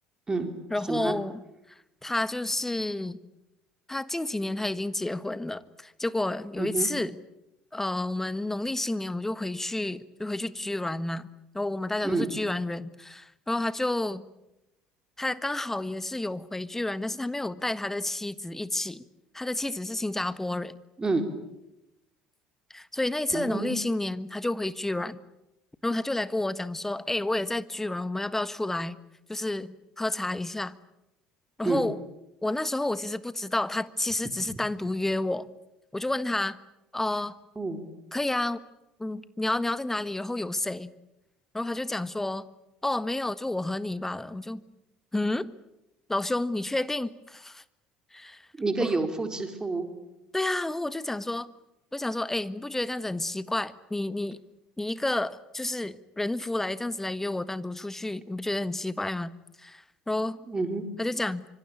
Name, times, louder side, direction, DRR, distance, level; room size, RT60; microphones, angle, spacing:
voice 1, 0.7-1.4 2.0-3.2 3.9-7.2 7.7-11.3 11.5-14.2 15.2-19.0 19.3-20.7 22.7-25.2 25.8-29.0 29.3-30.7 31.6-32.0 32.4-35.5 35.9-36.6 36.9-37.4 38.1-38.6 39.0-40.9 41.5-42.4 42.8-44.6 45.1-45.5 46.1-47.6 48.1-48.5 48.8-48.9 50.3-51.5 51.9-54.4 54.8-59.3 59.6-60.4 61.0-61.5, left 2 dB, 10° left, 15 dB, 1.5 m, -30 dB
voice 2, 6.6-6.9 12.0-12.3 21.0-21.2 23.3-23.7 31.6-31.8 37.6-37.8 48.6-49.9 60.5-60.8, right 3 dB, 20° right, 6 dB, 4.1 m, -28 dB
25.5 x 25.5 x 8.8 m, 0.91 s
hypercardioid pair, 60°, 3 cm